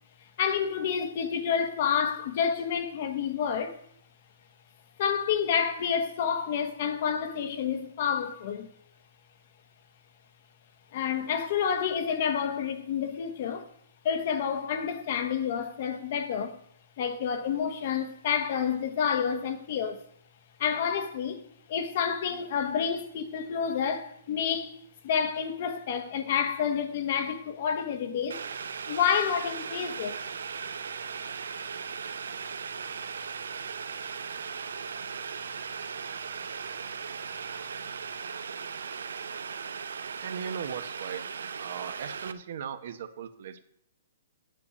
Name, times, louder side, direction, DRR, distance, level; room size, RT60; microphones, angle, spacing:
voice 1, 0.4-3.8 5.0-8.7 10.9-13.7 14.0-16.6 17.0-20.0 20.6-21.4 21.7-24.7 25.0-28.4 28.9-30.2, left 7 dB, 40° left, 1.1 m, -29 dB
Boiling, 28.3-42.3, right 6 dB, 85° right, 0.8 m, -38 dB
voice 2, 40.2-41.3 41.6-43.6, right 7 dB, 50° right, 1.0 m, -38 dB
7.7 x 7.1 x 8.3 m
hypercardioid pair, 170°, 0 cm